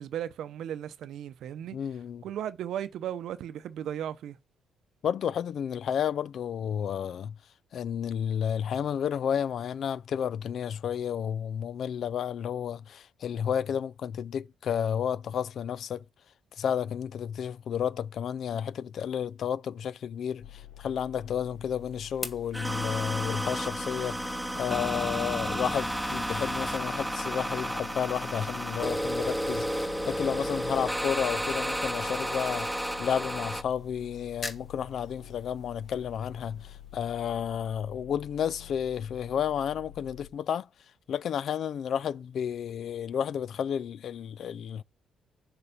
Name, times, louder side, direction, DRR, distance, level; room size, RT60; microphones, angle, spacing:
voice 1, 0.0-1.8 2.2-4.4, right 10 dB, 75° right, 0.7 m, -36 dB
voice 2, 1.7-2.2 5.0-7.4 7.7-16.0 16.6-40.7 41.1-44.8, left 8 dB, 65° left, 0.3 m, -32 dB
sound 1, 20.4-40.3, left 11 dB, 85° left, 0.8 m, -48 dB
sound 2, 21.4-38.3, left 3 dB, 35° left, 1.3 m, -50 dB
sound 3, 22.5-33.6, equal, ahead, 0.6 m, -32 dB
7.0 x 4.9 x 5.1 m
cardioid pair, 90°, 0 cm